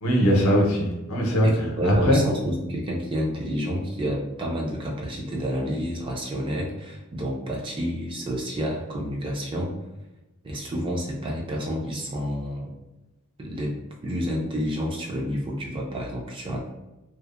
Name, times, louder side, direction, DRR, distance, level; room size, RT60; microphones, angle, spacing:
voice 1, 0.0-2.2, equal, 75° left, -1 dB, 0.6 m, -21 dB
voice 2, 1.4-9.7 10.4-12.7 13.4-13.7 14.0-16.6, equal, 25° right, -1 dB, 0.3 m, -29 dB
2.7 x 2.0 x 2.4 m, 1.0 s
head